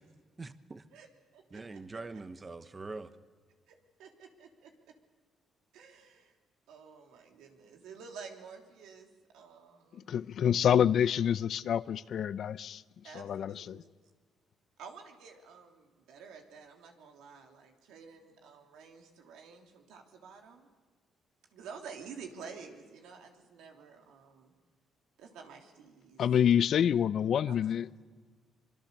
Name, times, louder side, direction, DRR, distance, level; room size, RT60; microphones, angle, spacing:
voice 1, 0.4-0.8 1.5-3.1, right 3 dB, 30° right, 1.1 m, -43 dB
voice 2, 1.3-1.8 3.7-4.9 5.7-6.3 6.7-9.1 9.3-10.1 13.0-13.9 14.8-20.7 21.5-24.5 25.2-26.2 27.5-27.6, right 5 dB, 90° right, 3.1 m, -50 dB
voice 3, 9.9-12.8 13.1-13.8 26.2-28.0, left 9 dB, 65° left, 0.6 m, -27 dB
25.0 x 23.5 x 6.8 m
cardioid pair, 90°, 0 cm